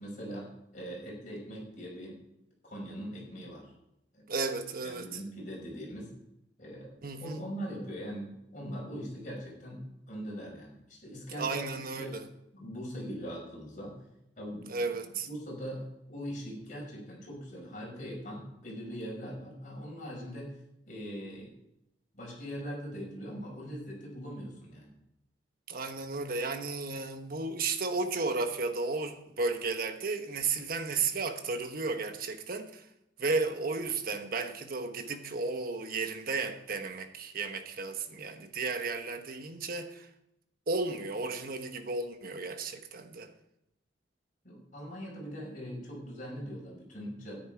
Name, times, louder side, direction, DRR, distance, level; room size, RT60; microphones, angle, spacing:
voice 1, 0.0-2.2 2.6-3.7 4.1-4.2 4.8-6.1 6.6-7.0 7.2-12.3 12.5-14.0 14.4-14.9 15.3-20.5 20.9-21.5 22.1-24.9 44.4-47.4, equal, 45° left, 5.4 m, -41 dB
voice 2, 4.3-5.1 7.0-7.4 11.4-12.2 14.7-15.3 25.7-32.9 33.2-40.1 40.7-43.3, right 3 dB, 50° right, 1.2 m, -33 dB
13.0 x 10.0 x 4.6 m
head